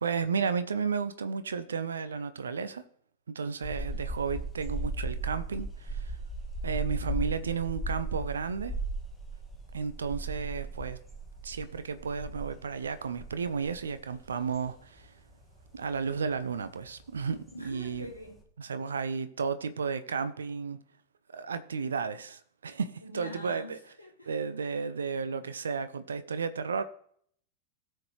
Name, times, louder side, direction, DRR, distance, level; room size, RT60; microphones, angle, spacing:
voice 1, 0.0-2.8 3.3-6.1 6.6-8.7 9.7-11.0 11.4-15.1 15.7-18.1 18.6-20.8 21.3-23.8 24.3-26.8, right 5 dB, 70° right, 0.8 m, -33 dB
sound 1, 3.6-18.4, right 2 dB, ahead, 2.0 m, -38 dB
voice 2, 17.5-18.4 23.0-24.3, left 1 dB, 90° right, 2.1 m, -45 dB
17.5 x 6.5 x 3.2 m
figure-of-eight pair, 90°, 0 cm